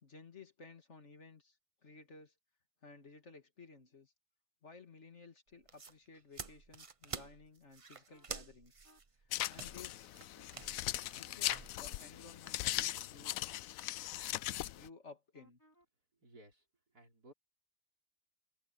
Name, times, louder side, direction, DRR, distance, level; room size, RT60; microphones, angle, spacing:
voice 1, 0.0-2.3 2.8-4.1 4.6-8.8 9.2-10.1 11.1-13.5 14.6-15.6, left 4 dB, 45° left, 2.5 m, -56 dB
sound 1, 5.5-12.1, right 4 dB, 30° right, 0.6 m, -49 dB
sound 2, 8.1-8.3 8.8-9.0 9.6-9.9 10.3-10.5 10.8-11.4 11.8-14.1 15.3-15.9, equal, 10° left, 3.6 m, -67 dB
sound 3, 9.3-14.9, left 14 dB, 70° left, 0.9 m, -39 dB
voice 2, 16.1-17.3, right 1 dB, 75° right, 5.7 m, -60 dB
omnidirectional pair, 1.6 m